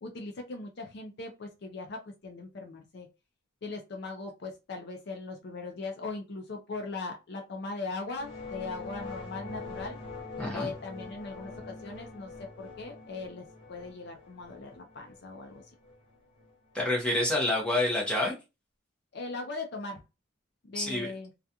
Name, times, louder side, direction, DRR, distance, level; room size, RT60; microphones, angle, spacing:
voice 1, 0.0-3.1 3.6-10.0 10.5-15.6 19.1-20.0 20.6-21.3, left 3 dB, 50° left, 3 dB, 0.4 m, -39 dB
sound 1, 8.1-16.7, left 3 dB, 25° left, 1.2 m, -44 dB
voice 2, 10.4-10.7 16.7-18.3 20.7-21.1, left 1 dB, 5° left, -3 dB, 0.8 m, -28 dB
2.3 x 2.3 x 2.7 m, 0.26 s
head